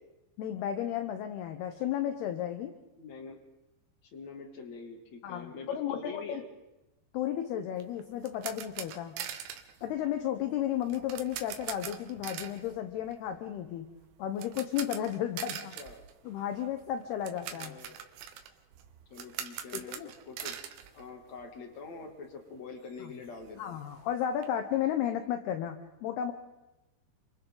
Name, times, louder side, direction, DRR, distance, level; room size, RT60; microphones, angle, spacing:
voice 1, 0.4-2.7 5.2-6.4 7.1-9.2 9.8-13.9 14.2-15.7 16.2-17.8 19.7-20.1 23.0-23.1 23.6-26.3, left 10 dB, 75° left, 7 dB, 2.5 m, -33 dB
voice 2, 3.0-3.4 4.1-6.4 15.7-16.0 17.5-18.0 19.1-20.0 20.3-20.5 20.9-23.8, left 4 dB, 40° left, 2 dB, 3.1 m, -45 dB
sound 1, 7.8-21.8 22.0-22.2 22.6-22.7 22.9-24.5, right 9 dB, 75° right, 3.5 m, -43 dB
30.0 x 26.5 x 3.9 m, 1.0 s
omnidirectional pair, 5.8 m